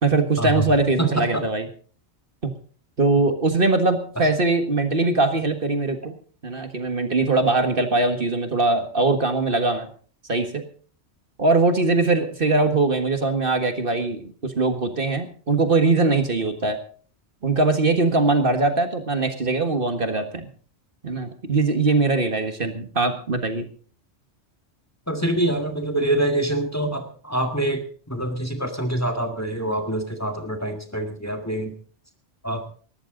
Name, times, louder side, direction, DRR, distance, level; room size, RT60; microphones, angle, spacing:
voice 1, 0.0-1.6 2.4-2.5 3.0-6.1 6.4-9.9 10.3-10.6 11.4-16.8 17.4-20.5 21.0-23.7, right 3 dB, 50° right, 7 dB, 1.8 m, -21 dB
voice 2, 1.0-1.5 4.2-4.3 25.1-31.7 32.4-32.7, right 1 dB, 15° left, 4 dB, 1.7 m, -25 dB
19.5 x 14.0 x 3.9 m, 0.43 s
omnidirectional pair, 1.2 m